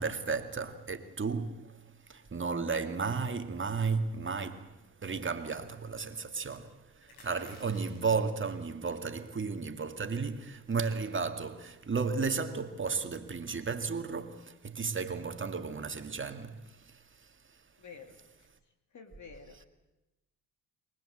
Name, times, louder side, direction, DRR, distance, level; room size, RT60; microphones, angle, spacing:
voice 1, 0.0-1.8 2.1-17.0, right 5 dB, 35° right, 2.1 m, -34 dB
sound 1, 7.0-8.2 9.0-9.3 9.7-9.8 10.0-10.2 10.8-11.1, left 2 dB, 85° left, 6.8 m, -57 dB
voice 2, 17.8-18.5 18.9-19.7, left 5 dB, 50° left, 2.5 m, -50 dB
23.5 x 20.0 x 7.9 m
supercardioid pair, 70°, 36 cm